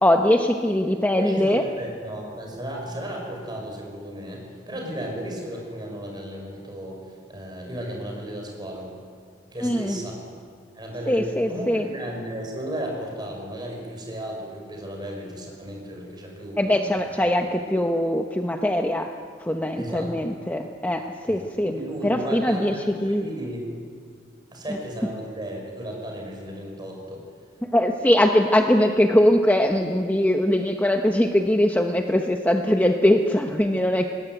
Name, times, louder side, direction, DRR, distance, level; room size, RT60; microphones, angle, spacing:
voice 1, 0.0-1.6 9.6-10.0 11.1-11.9 16.6-19.1 19.4-21.7 22.0-23.2 27.6-34.1, left 1 dB, 10° left, 3 dB, 0.9 m, -21 dB
voice 2, 1.2-7.0 7.3-8.9 9.5-10.2 10.7-16.8 17.2-17.3 19.8-20.1 21.3-23.6 24.5-27.2, equal, 25° right, 0 dB, 6.1 m, -34 dB
22.0 x 18.5 x 9.3 m, 2.1 s
head